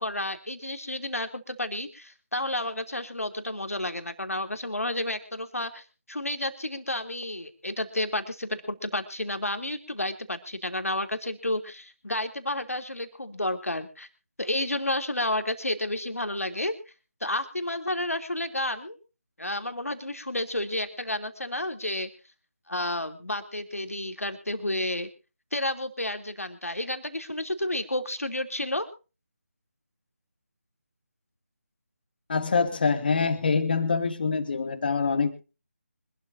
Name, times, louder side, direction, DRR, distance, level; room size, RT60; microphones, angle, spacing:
voice 1, 0.0-14.1 14.4-16.7 17.2-19.0 19.4-22.1 22.7-25.1 25.5-28.9, left 1 dB, 80° left, 8 dB, 3.0 m, -31 dB
voice 2, 32.3-35.4, left 4 dB, 40° left, 9 dB, 2.3 m, -25 dB
25.0 x 12.5 x 2.7 m, 0.33 s
figure-of-eight pair, 155°, 8 cm